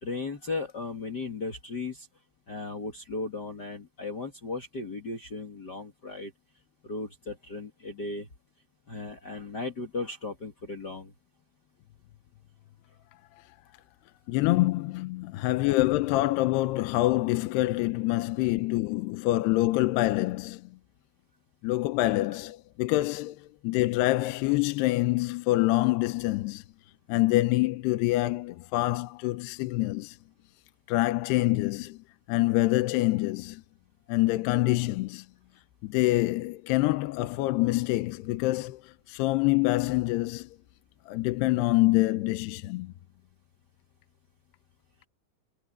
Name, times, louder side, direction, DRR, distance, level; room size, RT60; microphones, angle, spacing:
voice 1, 0.0-2.1 2.5-6.3 6.8-8.3 8.9-11.1 22.0-22.1, left 3 dB, 40° left, 1.5 m, -36 dB
voice 2, 14.3-20.6 21.6-26.6 27.1-30.2 30.9-32.0 32.3-33.6 34.1-35.3 35.8-40.6 41.1-42.9, left 18 dB, 80° left, 2.8 m, -26 dB
omnidirectional pair, 4.8 m